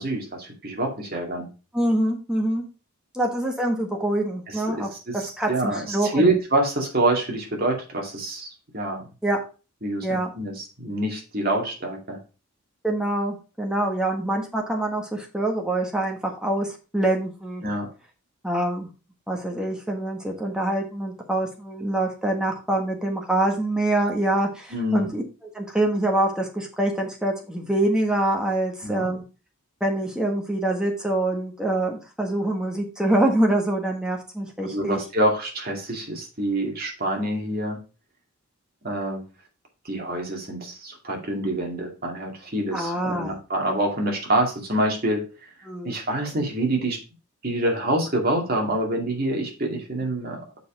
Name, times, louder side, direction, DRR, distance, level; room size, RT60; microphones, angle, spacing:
voice 1, 0.0-1.5 4.7-9.0 9.8-12.2 17.6-17.9 24.7-25.1 28.8-29.1 34.6-37.8 38.8-39.2 39.8-45.2 45.8-47.0 47.4-50.4, right 1 dB, 45° right, 1 dB, 2.2 m, -26 dB
voice 2, 1.7-2.6 3.1-4.9 5.4-6.4 9.2-9.4 10.0-10.3 12.8-17.6 18.4-18.9 19.3-25.2 25.5-29.2 29.8-35.0 42.7-43.4 45.6-45.9, right 1 dB, 5° right, 0 dB, 1.4 m, -25 dB
6.7 x 5.2 x 4.8 m, 0.33 s
head